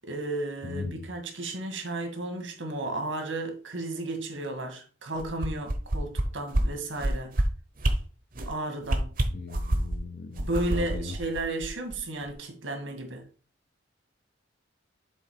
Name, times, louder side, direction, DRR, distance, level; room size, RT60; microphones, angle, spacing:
voice 1, 0.0-7.4 8.5-9.2 10.4-13.2, right 2 dB, 80° right, 1.9 m, -33 dB
voice 2, 0.6-1.1 9.3-11.1, left 4 dB, 55° left, 0.6 m, -38 dB
sound 1, 5.2-6.2 6.5-6.6 7.0-7.4 7.8-7.9 8.3-8.5 8.8-10.0 10.4-12.0 12.3-12.4, right 1 dB, 45° right, 0.9 m, -26 dB
7.0 x 3.9 x 4.9 m
head